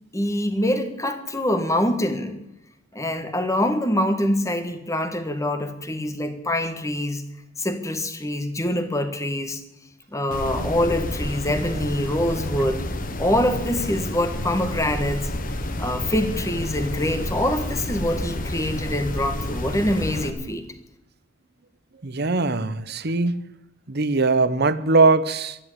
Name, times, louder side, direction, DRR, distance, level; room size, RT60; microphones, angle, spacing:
voice 1, 0.1-2.4 2.9-7.2 7.6-9.6 10.1-12.8 13.2-15.2 15.8-20.6, left 1 dB, 15° left, 8 dB, 1.7 m, -25 dB
sound 1, 10.3-20.3, left 1 dB, 45° left, 1.4 m, -30 dB
voice 2, 22.0-23.5 23.9-25.6, right 3 dB, 55° right, 15 dB, 0.9 m, -21 dB
13.0 x 11.0 x 8.9 m, 0.89 s
head